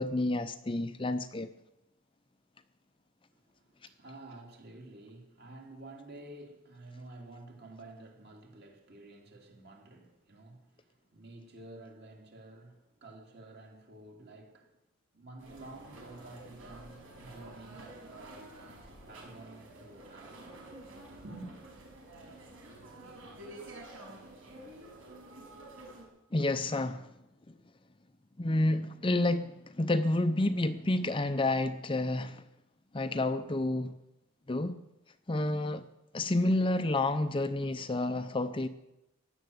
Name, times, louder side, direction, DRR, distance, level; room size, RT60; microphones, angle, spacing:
voice 1, 0.0-1.5 26.3-27.1 27.5-27.6 28.4-32.4 32.9-33.9 34.5-34.8 35.3-35.9 36.1-38.7, left 2 dB, 25° left, 0.6 m, -29 dB
voice 2, 3.4-14.7 15.1-20.6 21.2-21.5, right 2 dB, 50° right, 3.1 m, -50 dB
sound 1, 15.4-26.0, right 1 dB, 70° right, 6.0 m, -50 dB
16.0 x 11.0 x 8.0 m
head